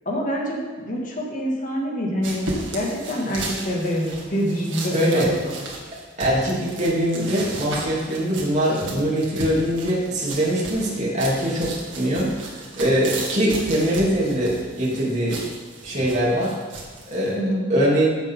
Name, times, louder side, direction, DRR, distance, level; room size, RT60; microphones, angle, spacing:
voice 1, 0.1-2.4 2.7-5.5 17.4-17.7, equal, 45° left, -2 dB, 2.2 m, -26 dB
sound 1, 2.2-17.3, right 2 dB, 80° right, 2.3 m, -35 dB
voice 2, 4.9-5.3 6.2-15.4 15.8-16.5 17.1-17.4 17.7-18.2, equal, 40° right, -5 dB, 3.1 m, -22 dB
14.5 x 7.4 x 3.8 m, 1.4 s
head